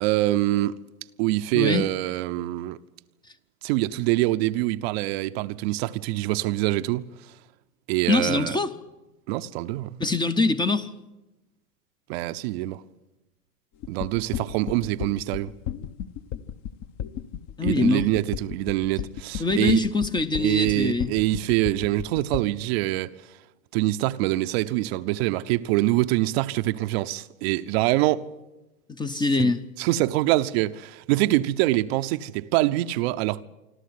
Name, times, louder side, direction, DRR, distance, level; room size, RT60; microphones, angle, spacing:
voice 1, 0.0-0.8 1.2-2.8 3.6-7.3 7.9-8.6 9.3-10.0 12.1-12.8 13.9-15.5 17.6-19.8 20.4-23.1 23.7-28.3 29.4-29.5 29.8-33.4, right 17 dB, 40° right, 0.7 m, -25 dB
voice 2, 8.1-8.7 10.0-10.9 17.6-18.1 19.4-21.1 28.9-29.6, left 3 dB, 10° left, 0.7 m, -23 dB
sound 1, 13.8-22.4, left 10 dB, 40° left, 1.1 m, -33 dB
25.5 x 13.0 x 9.6 m
hypercardioid pair, 105°, 46 cm